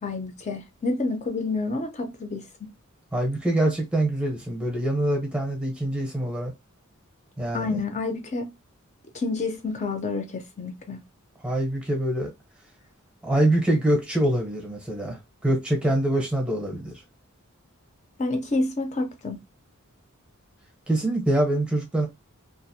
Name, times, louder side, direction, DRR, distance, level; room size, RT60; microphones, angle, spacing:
voice 1, 0.0-2.7 7.5-8.5 9.1-11.0 18.2-19.4, left 3 dB, 30° left, 0.5 m, -29 dB
voice 2, 3.1-6.5 7.4-7.8 11.4-12.3 13.2-16.9 20.9-22.1, right 1 dB, 5° right, 0.7 m, -24 dB
2.4 x 2.0 x 2.7 m
head